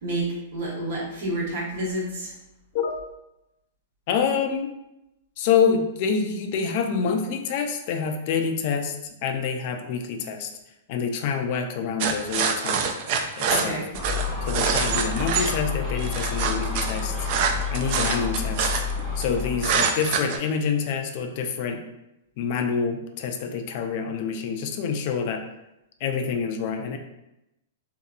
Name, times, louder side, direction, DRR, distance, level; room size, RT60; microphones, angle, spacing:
voice 1, 0.0-2.3 13.5-13.9, right 1 dB, 65° right, -4 dB, 1.1 m, -29 dB
voice 2, 2.7-3.1 4.1-4.7 5.4-8.9 9.2-10.5 10.9-12.8 13.4-13.8 14.4-17.1 17.7-18.7 19.2-21.8 22.4-25.4 26.0-27.0, left 6 dB, 50° left, 5 dB, 0.3 m, -26 dB
sound 1, 12.0-15.6 16.0-19.3 19.6-20.4, right 6 dB, 50° right, 0.3 m, -25 dB
Gull seagull, 13.9-19.8, left 5 dB, 10° right, 0.7 m, -29 dB
2.6 x 2.6 x 2.3 m, 0.90 s
hypercardioid pair, 135°, 0 cm